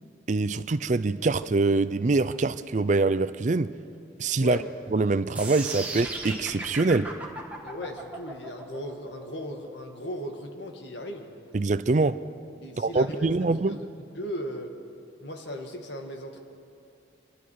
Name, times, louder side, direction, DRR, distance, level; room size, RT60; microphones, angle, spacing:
voice 1, 0.3-3.7 4.2-4.6 4.9-7.1 11.5-12.2 12.8-13.8, right 3 dB, 40° right, 12 dB, 0.5 m, -24 dB
voice 2, 4.4-4.7 7.6-11.3 12.6-13.3 13.7-13.9 14.2-14.7 15.2-16.4, equal, 70° left, 4 dB, 2.0 m, -37 dB
sound 1, 5.3-11.4, right 2 dB, 10° right, 1.8 m, -37 dB
25.5 x 25.0 x 4.8 m, 2.6 s
head